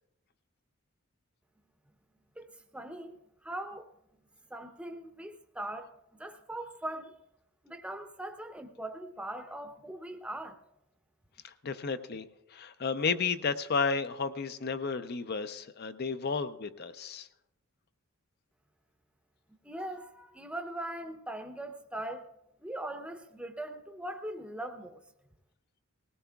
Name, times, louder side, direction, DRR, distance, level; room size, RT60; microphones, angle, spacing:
voice 1, 2.7-3.9 4.5-5.9 6.2-7.2 7.6-10.6 19.6-22.3 22.6-25.0, right 1 dB, 5° right, 0.7 m, -40 dB
voice 2, 11.4-12.3 12.5-17.3, left 5 dB, 50° left, 0.5 m, -32 dB
19.5 x 17.5 x 2.3 m
head